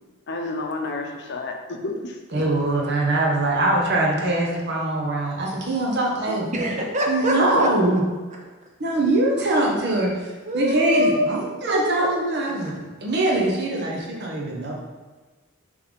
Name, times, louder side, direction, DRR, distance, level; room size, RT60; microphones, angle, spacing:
voice 1, 0.3-2.2 7.4-7.9, left 2 dB, 50° left, 3 dB, 0.8 m, -30 dB
voice 2, 2.3-6.5 7.1-8.0 8.8-14.7, right 2 dB, 50° right, -2 dB, 1.2 m, -23 dB
voice 3, 6.3-7.7 10.5-11.3 11.7-12.1 12.6-12.8, equal, 35° right, 0 dB, 0.9 m, -24 dB
5.8 x 3.5 x 5.1 m, 1.3 s
head